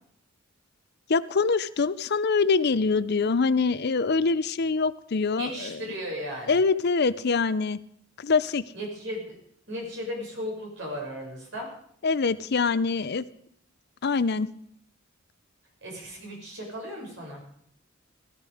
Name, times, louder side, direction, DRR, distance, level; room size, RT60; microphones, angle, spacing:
voice 1, 1.1-5.8 6.5-7.8 8.2-8.6 12.0-13.2 14.0-14.5, left 4 dB, 55° left, 15 dB, 0.6 m, -24 dB
voice 2, 5.4-6.6 8.7-9.3 9.7-11.7 15.8-17.4, equal, 65° right, 0 dB, 6.5 m, -35 dB
17.5 x 14.0 x 5.0 m, 0.65 s
head